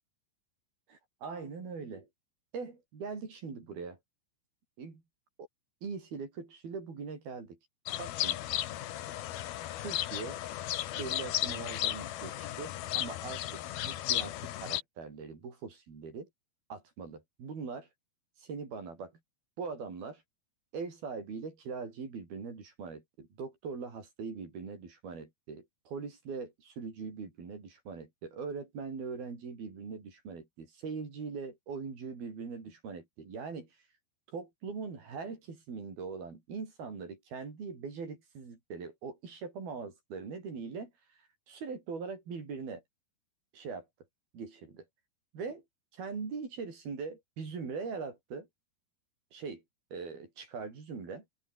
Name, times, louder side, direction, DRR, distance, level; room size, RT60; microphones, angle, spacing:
voice 1, 0.9-2.1 2.5-4.0 4.8-5.0 5.8-7.6 8.0-8.4 9.8-10.4 11.0-16.3 16.7-17.9 18.4-19.1 19.6-20.2 20.7-33.7 34.3-40.9 41.5-42.8 43.5-43.9 44.3-44.9 45.3-45.6 45.9-48.5 49.3-49.6 49.9-51.2, right 5 dB, 60° right, 7.3 m, -41 dB
sound 1, 7.9-14.8, left 13 dB, 70° left, 3.1 m, -35 dB
omnidirectional pair, 4.9 m